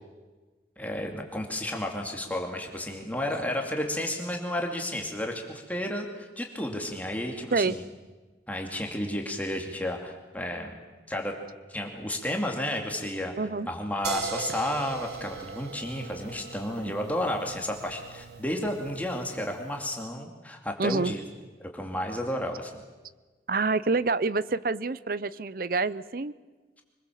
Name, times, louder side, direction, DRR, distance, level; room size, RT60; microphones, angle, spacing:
voice 1, 0.8-7.8 8.5-10.8 11.1-11.3 11.7-13.3 13.7-21.2 21.6-22.7, left 1 dB, 10° left, 2 dB, 2.5 m, -32 dB
voice 2, 13.4-13.7 20.8-21.1 23.5-26.3, right 3 dB, 55° right, 17 dB, 0.7 m, -27 dB
sound 1, 14.0-19.9, right 5 dB, 75° right, 1.4 m, -40 dB
25.0 x 21.0 x 7.5 m, 1.3 s
head